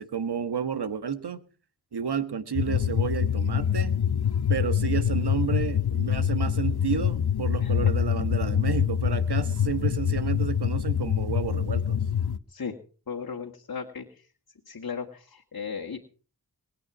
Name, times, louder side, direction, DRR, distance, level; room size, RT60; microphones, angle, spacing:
voice 1, 0.0-1.4 1.9-3.9 4.5-12.0, right 7 dB, 80° right, 12 dB, 1.5 m, -31 dB
sound 1, 2.5-12.4, left 8 dB, 75° left, 0.8 m, -25 dB
voice 2, 7.6-7.9 12.5-12.8 13.1-14.1 14.7-16.0, left 6 dB, 60° left, 2 dB, 1.8 m, -36 dB
21.5 x 8.7 x 6.2 m, 0.40 s
cardioid pair, 50°, 39 cm